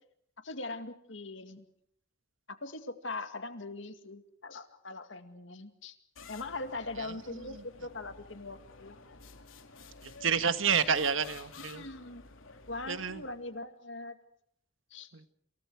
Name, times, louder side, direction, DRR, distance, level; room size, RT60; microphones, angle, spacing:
voice 1, 0.4-1.6 2.6-6.0 6.3-9.0 11.6-12.2 12.7-14.2 14.9-15.1, left 2 dB, 65° left, 8 dB, 2.2 m, -41 dB
sound 1, 6.2-13.6, left 4 dB, 80° left, 2.9 m, -52 dB
voice 2, 10.2-11.8 12.9-13.2 15.1-15.3, right 6 dB, 75° right, 10 dB, 1.5 m, -29 dB
29.0 x 27.5 x 4.8 m, 0.68 s
head